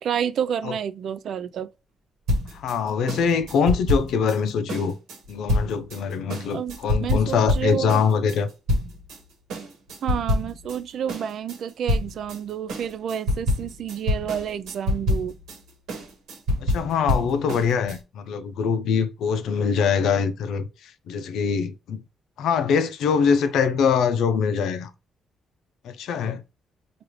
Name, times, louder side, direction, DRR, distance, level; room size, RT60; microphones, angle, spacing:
voice 1, 0.0-1.7 6.5-8.0 10.0-15.3, right 8 dB, 65° right, 0.3 m, -29 dB
sound 1, 2.3-9.2 9.5-10.8 11.1-18.0, left 1 dB, 85° right, 1.1 m, -27 dB
voice 2, 2.5-4.9 5.3-8.5 16.6-22.0 22.4-24.9 25.8-26.4, left 6 dB, 80° left, 0.5 m, -23 dB
4.8 x 2.5 x 3.0 m
cardioid pair, 90°, 0 cm